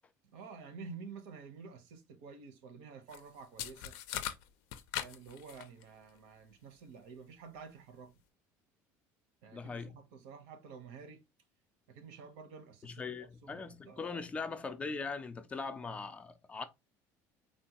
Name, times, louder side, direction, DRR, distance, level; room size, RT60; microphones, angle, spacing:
voice 1, 0.3-4.0 5.0-8.1 9.4-11.2 11.9-13.0 13.4-14.3, right 5 dB, 90° right, 0.8 m, -50 dB
sound 1, 3.1-3.2 3.6-5.8, left 11 dB, 80° left, 0.4 m, -40 dB
voice 2, 9.5-9.9 12.8-16.7, left 4 dB, 20° left, 0.3 m, -40 dB
3.6 x 2.2 x 2.8 m
cardioid pair, 155°, 7 cm